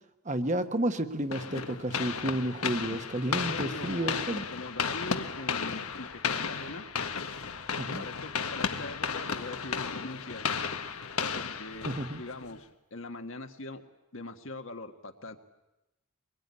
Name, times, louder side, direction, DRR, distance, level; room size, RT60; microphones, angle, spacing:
voice 1, 0.2-4.4 7.8-8.0 11.8-12.2, right 1 dB, 35° right, 8 dB, 1.3 m, -31 dB
sound 1, 1.3-12.6, left 6 dB, 80° left, 1.6 m, -34 dB
voice 2, 3.3-4.2 4.5-6.8 8.0-10.5 11.2-11.9 12.2-13.8 14.1-15.4, left 2 dB, 60° left, 6 dB, 1.7 m, -42 dB
24.5 x 22.0 x 9.8 m, 0.97 s
head